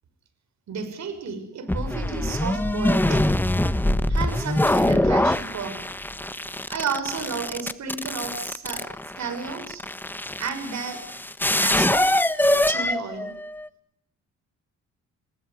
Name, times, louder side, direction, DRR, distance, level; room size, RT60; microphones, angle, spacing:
voice 1, 0.7-3.3 4.1-5.8 6.7-8.9 9.2-9.8 10.4-11.0 11.5-12.3 12.7-13.3, right 5 dB, 65° right, 10 dB, 6.1 m, -32 dB
sound 1, 1.7-13.7, left 1 dB, 5° left, 1.1 m, -24 dB
29.0 x 19.0 x 9.7 m, 0.74 s
cardioid pair, 90°, 30 cm